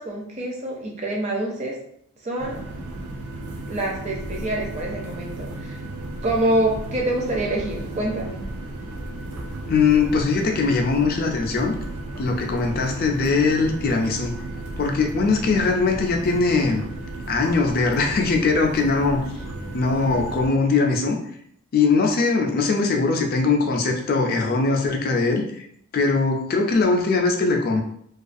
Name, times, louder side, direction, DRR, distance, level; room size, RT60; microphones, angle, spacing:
voice 1, 0.0-1.8 2.2-2.6 3.7-5.8 6.2-8.4, right 1 dB, 30° right, -1 dB, 0.5 m, -26 dB
sound 1, 2.4-20.5, right 2 dB, 85° right, 0.4 m, -34 dB
voice 2, 9.7-11.7 12.2-14.3 14.8-16.8 17.3-19.2 19.7-21.2 21.7-25.4 25.9-27.8, left 4 dB, 45° left, 2 dB, 0.3 m, -21 dB
2.3 x 2.3 x 2.5 m, 0.71 s
head